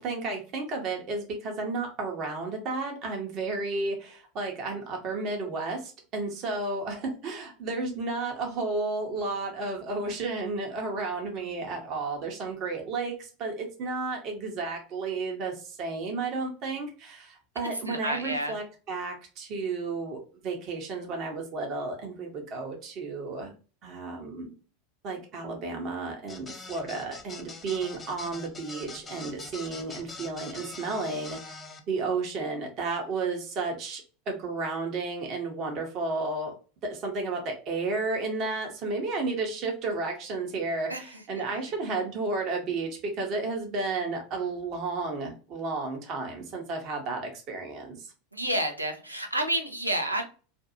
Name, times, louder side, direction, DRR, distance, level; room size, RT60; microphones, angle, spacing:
voice 1, 0.0-23.5 23.8-24.5 25.0-36.5 36.8-48.1, right 3 dB, 40° right, 2 dB, 0.8 m, -32 dB
voice 2, 17.9-18.6 40.9-41.2 48.3-50.3, right 1 dB, 90° right, 4 dB, 0.5 m, -30 dB
sound 1, 26.3-31.8, left 3 dB, 20° left, 0.5 m, -43 dB
2.5 x 2.3 x 2.6 m, 0.36 s
figure-of-eight pair, 80°, 0 cm